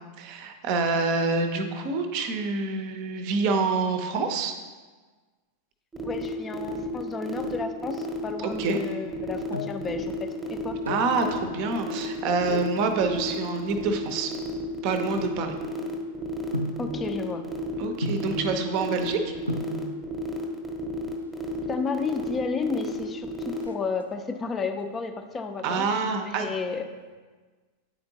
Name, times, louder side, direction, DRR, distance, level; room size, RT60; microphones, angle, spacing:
voice 1, 0.2-4.5 8.4-8.8 10.9-14.3 14.8-15.5 17.8-19.3 25.6-26.5, right 4 dB, 45° right, 6 dB, 0.6 m, -27 dB
sound 1, 5.9-23.6, right 3 dB, 5° right, 0.9 m, -33 dB
voice 2, 6.0-10.8 16.8-17.4 21.7-26.8, left 4 dB, 20° left, 6 dB, 0.5 m, -32 dB
sound 2, 9.1-9.9 10.6-11.2 12.4-12.8 13.5-15.9 16.5-16.9 18.0-18.4 19.2-19.3 19.5-19.8 20.9-21.5 21.8-21.9 22.1-22.2 22.6-23.0 23.3-24.4 24.8-25.2 25.6-26.7 27.0-27.1, left 1 dB, 90° right, 0.4 m, -35 dB
9.2 x 4.3 x 2.8 m, 1.4 s
figure-of-eight pair, 90°, 0 cm